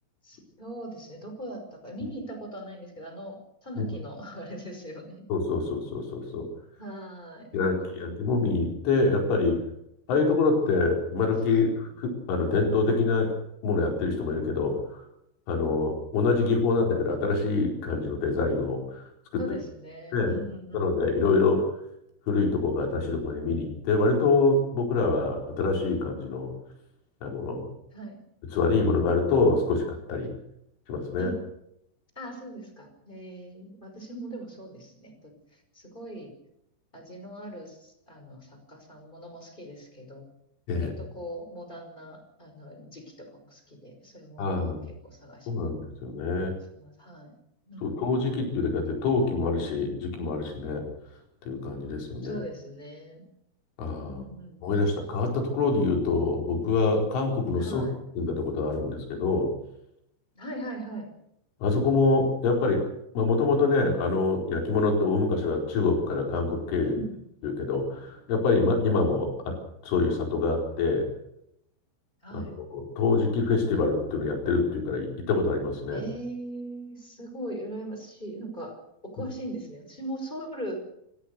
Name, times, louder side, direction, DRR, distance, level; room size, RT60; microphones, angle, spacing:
voice 1, 0.2-5.2 6.8-8.3 19.4-20.9 27.9-28.2 31.2-31.4 32.2-36.3 36.9-40.3 40.7-44.7 45.0-45.7 46.5-47.4 47.7-48.1 52.2-53.2 54.0-54.8 57.6-58.0 60.3-61.1 66.8-67.2 72.2-72.5 75.9-80.8, right 1 dB, 10° left, 4 dB, 5.2 m, -40 dB
voice 2, 5.3-6.5 7.5-9.6 10.1-13.3 13.6-15.0 15.5-19.4 20.1-20.4 20.7-21.7 22.3-26.5 27.2-27.7 28.5-30.3 30.9-31.3 40.7-40.9 44.4-44.9 45.5-46.6 47.8-50.9 51.5-52.4 53.8-54.2 54.6-57.9 58.2-59.5 61.6-62.9 63.2-66.9 67.4-71.1 72.3-72.4 72.7-76.0, left 3 dB, 85° left, 1 dB, 7.0 m, -25 dB
27.5 x 16.0 x 6.9 m, 0.79 s
omnidirectional pair, 5.4 m